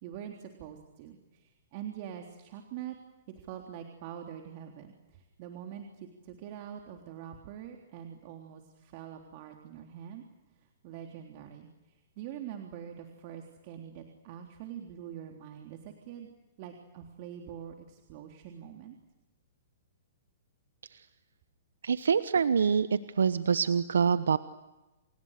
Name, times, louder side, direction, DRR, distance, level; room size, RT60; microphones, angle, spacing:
voice 1, 0.0-3.0 3.5-10.2 10.8-11.7 12.2-16.3 16.6-19.0, right 9 dB, 45° right, 3 dB, 3.5 m, -44 dB
voice 2, 21.8-24.4, right 6 dB, 75° right, 14 dB, 1.0 m, -26 dB
29.0 x 28.5 x 6.7 m, 1.1 s
hypercardioid pair, 120°, 0 cm